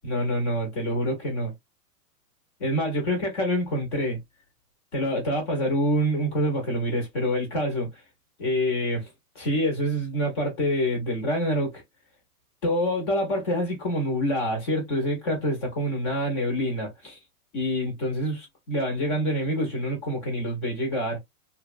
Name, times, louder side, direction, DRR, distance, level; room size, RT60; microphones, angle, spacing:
voice 1, 0.0-1.5 2.6-4.2 4.9-7.9 8.4-9.1 9.4-11.8 12.6-17.2 17.5-21.2, equal, 20° left, 0.5 m, -26 dB
2.7 x 2.1 x 2.3 m
hypercardioid pair, 140°, 47 cm